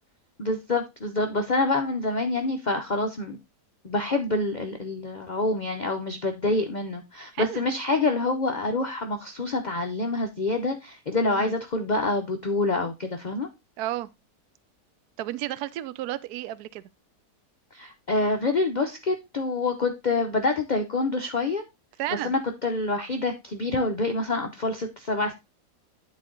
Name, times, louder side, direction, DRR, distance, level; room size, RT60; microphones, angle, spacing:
voice 1, 0.4-3.4 3.8-13.5 17.7-21.6 22.2-25.3, left 2 dB, 60° left, 0.4 m, -26 dB
voice 2, 11.2-11.5 13.8-14.1 15.2-16.8 22.0-22.3, right 14 dB, 70° right, 1.1 m, -32 dB
10.5 x 4.2 x 3.7 m
omnidirectional pair, 1.9 m